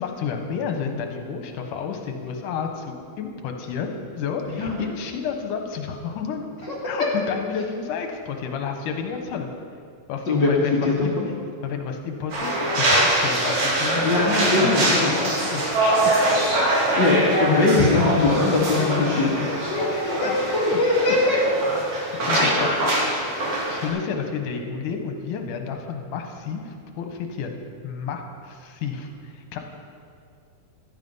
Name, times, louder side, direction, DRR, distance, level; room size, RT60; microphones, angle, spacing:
voice 1, 0.0-6.5 6.8-9.5 10.1-11.2 11.6-14.5 14.8-16.0 17.9-18.1 18.7-19.2 19.6-20.4 20.7-20.8 21.0-21.2 22.3-22.7 23.6-27.6 27.8-29.6, left 6 dB, 70° left, 4 dB, 2.6 m, -31 dB
voice 2, 10.3-11.3 14.0-15.2 17.0-19.4 20.2-21.4 22.1-22.8, left 3 dB, 40° left, -3 dB, 1.8 m, -21 dB
sound 1, 12.3-23.9, right 1 dB, 55° right, 4.2 m, -23 dB
15.0 x 12.0 x 5.6 m, 2.2 s
omnidirectional pair, 4.1 m